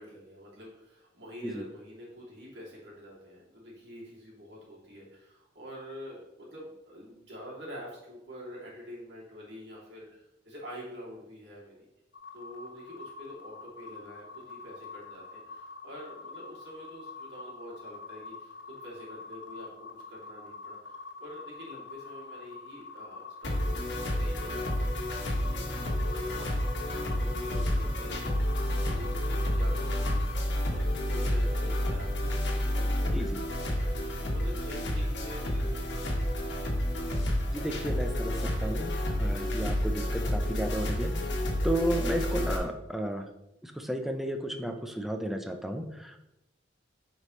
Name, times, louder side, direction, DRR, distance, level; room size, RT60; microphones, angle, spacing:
voice 1, 0.0-11.9 12.3-36.3, equal, 65° right, -5 dB, 2.9 m, -47 dB
sound 1, 12.1-30.4, left 4 dB, 90° left, 1.3 m, -45 dB
sound 2, 23.4-42.6, left 1 dB, 70° left, 1.5 m, -30 dB
voice 2, 37.5-38.9 39.2-41.2 41.6-43.3 43.6-46.2, right 1 dB, ahead, 4 dB, 0.6 m, -33 dB
9.6 x 5.0 x 3.2 m, 0.90 s
head